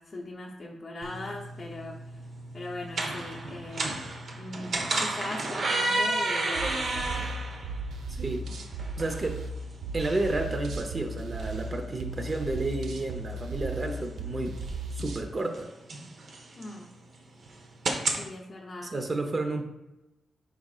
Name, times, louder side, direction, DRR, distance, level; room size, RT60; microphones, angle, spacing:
voice 1, 0.0-2.2 2.5-4.0 4.3-7.3 16.6-16.9 18.1-18.9, left 2 dB, 35° left, -2 dB, 0.7 m, -40 dB
sound 1, 1.0-18.2, right 2 dB, 50° right, 1.0 m, -34 dB
sound 2, 6.6-15.3, right 2 dB, 75° right, 0.7 m, -36 dB
voice 2, 8.1-8.4 9.0-9.4 9.9-14.6 14.9-15.7 18.9-19.7, right 2 dB, 30° right, 4 dB, 0.7 m, -31 dB
9.3 x 4.9 x 2.4 m, 0.96 s
wide cardioid pair, 125°, 0 cm